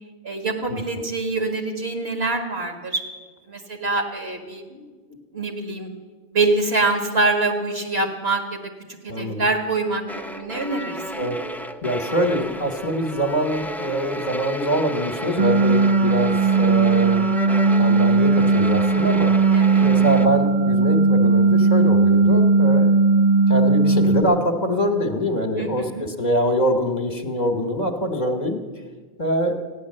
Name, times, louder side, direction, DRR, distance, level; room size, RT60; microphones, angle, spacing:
voice 1, 0.2-3.0 3.5-4.9 5.3-5.9 6.3-8.6 9.0-10.0 10.3-11.3 19.5-19.9 25.6-26.1, right 3 dB, 65° right, 4 dB, 2.0 m, -25 dB
voice 2, 9.1-9.4 11.2-11.4 11.8-17.3 17.8-19.3 19.8-22.9 23.5-28.6 29.2-29.5, equal, 40° left, 6 dB, 1.1 m, -24 dB
sound 1, 10.1-20.3, equal, 5° left, 0.3 m, -33 dB
sound 2, 15.4-24.2, right 3 dB, 40° right, 0.8 m, -17 dB
14.5 x 10.0 x 7.5 m, 1.4 s
omnidirectional pair, 1.1 m